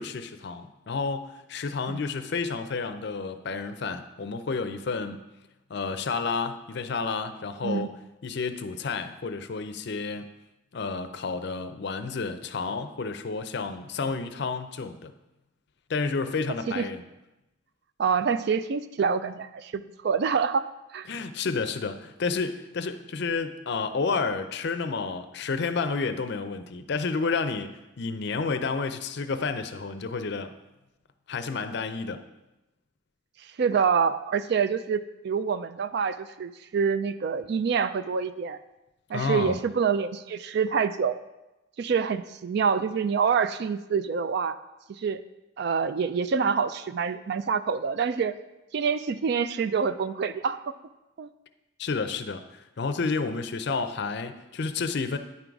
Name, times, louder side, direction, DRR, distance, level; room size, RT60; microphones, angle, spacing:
voice 1, 0.0-5.2 5.7-7.9 8.2-10.3 10.7-15.1 15.9-17.0 21.1-27.7 28.0-30.5 31.3-32.2 39.1-39.6 51.8-55.2, left 4 dB, 55° left, 9 dB, 0.5 m, -30 dB
voice 2, 18.0-20.7 20.9-21.1 33.4-38.6 39.1-41.2 41.8-44.6 45.0-45.2 45.6-48.3 48.7-50.7 51.2-51.3, right 6 dB, 55° right, 12 dB, 0.3 m, -26 dB
9.7 x 3.9 x 4.6 m, 0.97 s
head